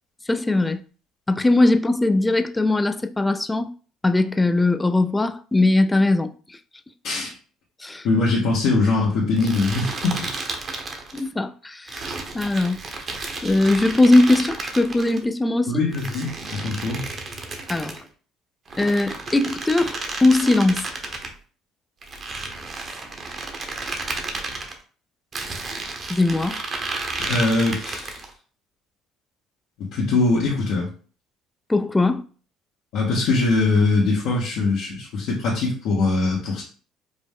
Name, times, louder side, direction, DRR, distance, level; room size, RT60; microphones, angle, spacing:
voice 1, 0.3-0.8 1.3-3.7 4.0-6.6 7.8-8.1 11.1-12.8 13.4-15.8 17.7-18.0 18.8-20.9 26.1-26.6 31.7-32.2, left 2 dB, 15° left, 0.3 m, -20 dB
voice 2, 8.0-10.3 15.7-17.0 27.2-28.2 29.9-30.9 32.9-36.6, left 3 dB, 75° left, 1.2 m, -22 dB
sound 1, 9.4-11.3 11.9-15.2 15.9-18.0 18.7-21.3 22.0-24.7 25.3-28.3, right 3 dB, 40° right, 0.9 m, -32 dB
5.1 x 2.1 x 3.6 m
cardioid pair, 100°, 0 cm